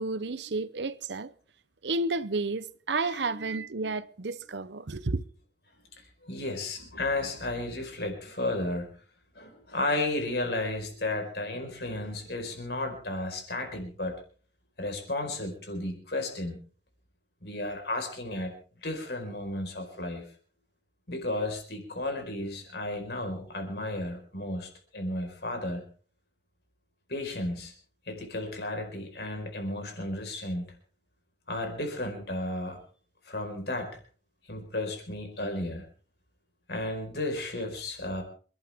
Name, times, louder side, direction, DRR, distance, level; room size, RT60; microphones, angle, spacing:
voice 1, 0.0-1.3 1.8-5.3, right 3 dB, 75° right, 0.8 m, -31 dB
voice 2, 3.0-3.6 6.0-8.9 9.3-14.2 14.8-16.6 17.4-18.5 18.8-20.3 21.1-25.8 27.1-27.7 28.1-30.7 31.5-32.8 33.2-34.0 34.5-35.8 36.7-38.2, left 2 dB, 60° left, 4.8 m, -33 dB
27.0 x 11.5 x 3.6 m
head